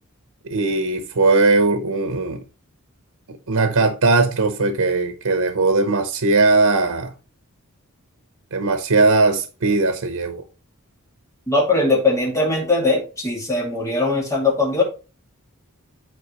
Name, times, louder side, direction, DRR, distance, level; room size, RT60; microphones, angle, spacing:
voice 1, 0.4-2.4 3.5-7.1 8.5-10.4, right 3 dB, 80° right, 0.9 m, -19 dB
voice 2, 11.5-14.8, left 2 dB, 15° left, 2.4 m, -20 dB
9.4 x 4.4 x 3.0 m
head